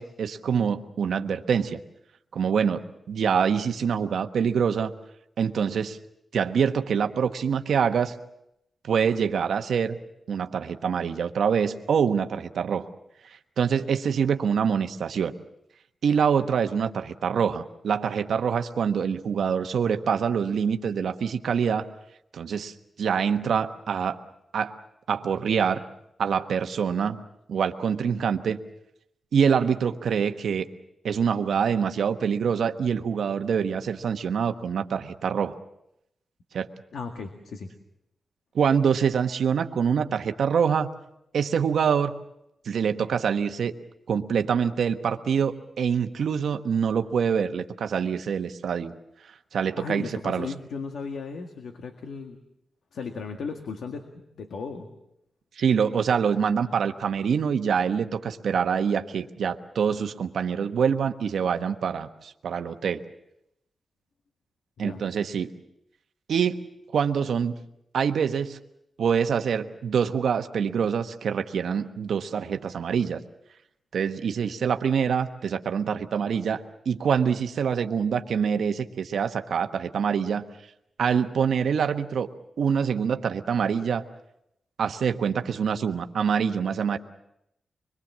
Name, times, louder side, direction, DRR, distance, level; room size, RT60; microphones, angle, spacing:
voice 1, 0.0-1.8 2.3-4.9 5.4-6.0 6.3-8.1 8.8-10.0 10.3-12.9 13.6-15.3 16.0-21.8 22.3-24.2 24.5-24.7 25.1-25.8 26.2-27.2 27.5-28.6 29.3-30.7 31.0-35.5 36.5-36.7 38.5-40.9 41.3-42.1 42.6-43.7 44.1-48.9 49.5-50.5 55.6-63.0 64.8-65.5 66.3-66.6 66.9-67.5 67.9-68.6 69.0-73.2 73.9-80.4 81.0-82.3 82.6-84.0 84.8-87.0, right 7 dB, 75° right, 7 dB, 1.1 m, -25 dB
voice 2, 36.9-37.7 49.8-52.4 52.9-54.9 64.8-65.0, left 5 dB, 80° left, 5 dB, 1.8 m, -36 dB
25.5 x 22.0 x 7.4 m, 0.80 s
wide cardioid pair, 175°, 0 cm